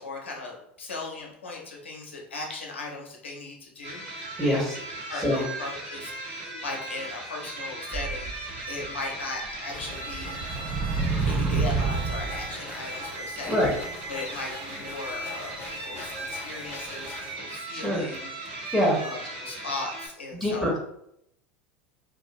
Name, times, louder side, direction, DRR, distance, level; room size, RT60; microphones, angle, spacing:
voice 1, 0.0-4.0 5.1-10.4 11.2-13.6 14.1-18.3 18.6-18.8 19.0-20.8, left 3 dB, 85° left, -1 dB, 0.6 m, -38 dB
sound 1, 3.8-20.1, right 2 dB, 55° right, 0.7 m, -38 dB
voice 2, 4.4-5.4 6.4-6.6 13.4-13.7 17.7-18.1 18.7-19.0 20.3-20.8, equal, 5° left, -4 dB, 0.7 m, -25 dB
sound 2, 7.9-8.9 9.5-9.6 10.1-12.6, right 4 dB, 30° right, 0.3 m, -28 dB
sound 3, 9.7-17.3, left 3 dB, 45° left, 0.6 m, -43 dB
2.4 x 2.0 x 2.6 m, 0.75 s
hypercardioid pair, 85°, 6 cm